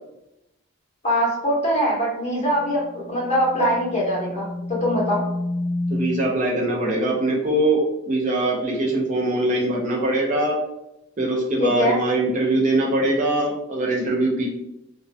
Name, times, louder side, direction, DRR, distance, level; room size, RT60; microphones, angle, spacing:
voice 1, 1.0-5.2 11.6-12.0, equal, 30° left, -5 dB, 0.9 m, -22 dB
sound 1, 2.5-6.4, left 1 dB, 60° left, 0.8 m, -30 dB
voice 2, 5.9-10.6 11.2-14.5, right 1 dB, 35° right, -3 dB, 0.4 m, -22 dB
2.2 x 2.2 x 2.5 m, 0.88 s
head